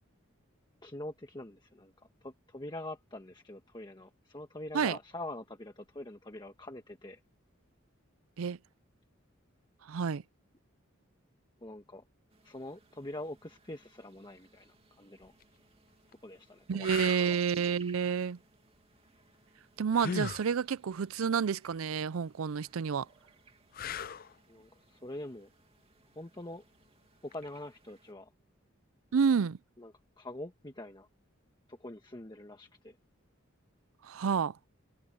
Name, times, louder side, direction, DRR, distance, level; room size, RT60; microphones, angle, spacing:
voice 1, 0.8-7.2 11.6-12.0 12.4-15.3 16.2-16.9 17.2-17.4 24.5-25.5 26.1-26.6 27.2-28.3 29.8-31.1 31.7-33.0, left 1 dB, 20° left, 1.4 m, -44 dB
voice 2, 9.9-10.2 16.7-18.4 19.8-23.1 29.1-29.6 34.1-34.5, right 6 dB, 90° right, 0.5 m, -29 dB
sound 1, 12.3-28.1, right 5 dB, 30° right, 2.5 m, -59 dB
sound 2, 15.2-15.4 16.1-16.2 16.8-17.3 19.9-20.5 23.7-24.3 27.3-27.5, left 5 dB, 45° left, 0.5 m, -37 dB
head